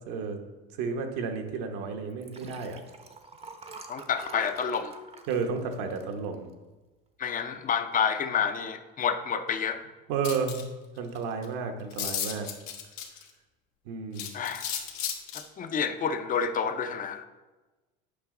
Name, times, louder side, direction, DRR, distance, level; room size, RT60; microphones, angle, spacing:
voice 1, 0.0-0.4 0.8-2.8 5.3-6.5 10.1-10.6 11.0-12.5 13.9-14.3, right 5 dB, 65° right, 5 dB, 1.1 m, -32 dB
Liquid, 2.1-6.7 7.2-7.5 7.7-7.8, right 4 dB, 20° right, 0.7 m, -47 dB
voice 2, 3.9-4.9 7.2-9.9 14.3-14.6 15.3-17.3, left 7 dB, 25° left, 9 dB, 0.6 m, -29 dB
sound 1, 10.2-10.6 11.2-11.3 11.4-11.5 11.9-13.3 14.2-15.4, left 9 dB, 80° left, 1.2 m, -34 dB
8.4 x 5.2 x 3.7 m, 1.2 s
supercardioid pair, 105°, 30 cm